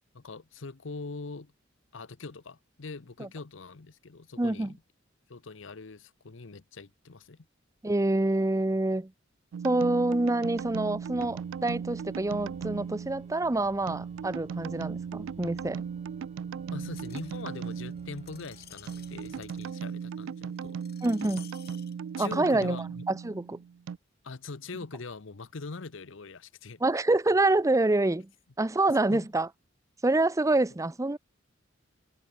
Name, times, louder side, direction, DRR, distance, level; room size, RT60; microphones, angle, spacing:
voice 1, 0.1-1.5 1.9-4.8 5.3-7.5 16.7-20.8 22.2-23.0 24.2-26.8 29.1-29.3, left 3 dB, 70° left, 0.9 m, -42 dB
voice 2, 4.4-4.7 7.8-9.1 9.6-15.8 21.0-21.5 22.2-22.8 23.1-23.6 26.8-28.3 28.6-29.5 30.0-31.2, right 2 dB, 15° right, 0.6 m, -26 dB
sound 1, 9.5-24.0, right 7 dB, 70° right, 0.3 m, -38 dB
Organ, 10.5-19.8, right 1 dB, 35° right, 1.5 m, -55 dB
Screech, 17.0-21.9 22.6-22.7, left 12 dB, 55° left, 3.4 m, -54 dB
head